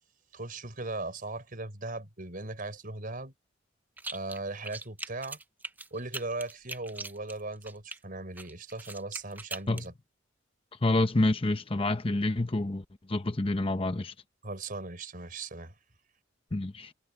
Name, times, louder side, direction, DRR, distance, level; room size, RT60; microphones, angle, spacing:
voice 1, 0.3-3.3 4.1-5.4 5.9-9.9 14.4-15.7, right 2 dB, 45° right, 4.9 m, -38 dB
sound 1, 4.0-4.4 4.6-8.0 8.4-9.9, right 3 dB, 10° right, 0.5 m, -41 dB
voice 2, 10.8-14.1 16.5-16.9, left 2 dB, 30° left, 0.8 m, -28 dB
head